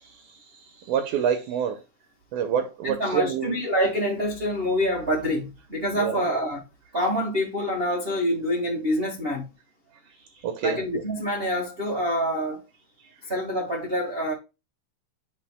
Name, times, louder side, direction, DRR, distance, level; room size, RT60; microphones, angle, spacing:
voice 1, 0.1-1.8 2.3-3.6 6.0-6.3 10.1-10.8 13.0-13.3, right 8 dB, 70° right, 2.0 m, -28 dB
voice 2, 2.8-6.6 6.9-9.4 10.6-12.6 13.3-14.3, equal, 55° right, 0.6 m, -26 dB
10.5 x 4.1 x 2.2 m
omnidirectional pair, 4.2 m